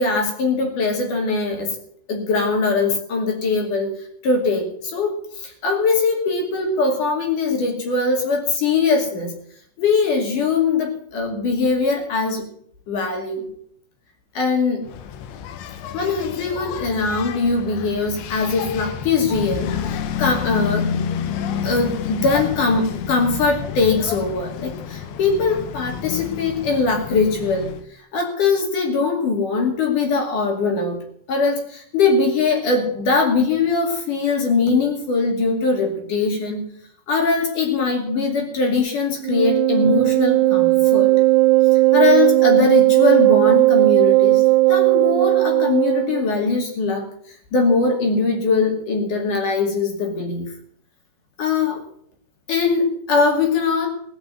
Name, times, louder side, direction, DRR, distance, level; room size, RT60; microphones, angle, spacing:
voice 1, 0.0-1.7 2.1-3.9 4.2-9.3 9.8-12.4 12.9-13.4 14.3-14.8 15.9-20.9 21.6-27.7 28.1-31.0 31.3-36.6 37.1-41.1 41.7-44.4 44.7-47.0 47.5-50.5 51.4-51.8 52.5-53.9, left 4 dB, 50° left, 2 dB, 3.2 m, -21 dB
Engine, 14.9-27.8, left 8 dB, 75° left, 3.1 m, -29 dB
Wind instrument woodwind instrument, 39.2-46.3, right 20 dB, 80° right, 2.9 m, -16 dB
17.5 x 6.2 x 9.1 m, 0.65 s
omnidirectional pair, 5.6 m